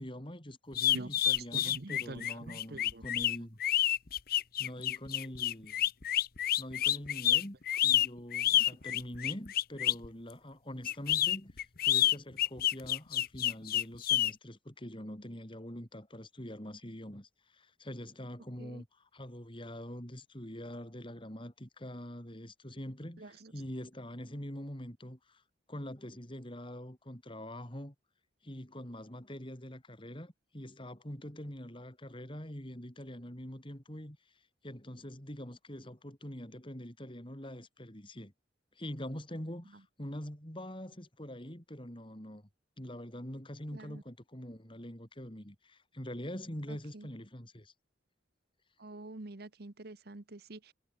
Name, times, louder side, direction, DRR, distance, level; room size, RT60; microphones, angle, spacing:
voice 1, 0.0-3.6 4.6-5.8 6.6-7.6 7.8-25.4 25.7-27.9 28.4-34.2 34.6-38.3 38.8-42.4 42.8-47.7, equal, 25° left, 4.3 m, -44 dB
sound 1, 0.7-10.1 10.8-14.3, left 12 dB, 50° left, 1.0 m, -29 dB
voice 2, 1.5-3.0 8.0-8.1 8.6-8.7 18.6-18.8 23.2-23.5 43.7-44.0 46.7-47.1 48.8-50.7, right 2 dB, 55° right, 1.2 m, -46 dB
head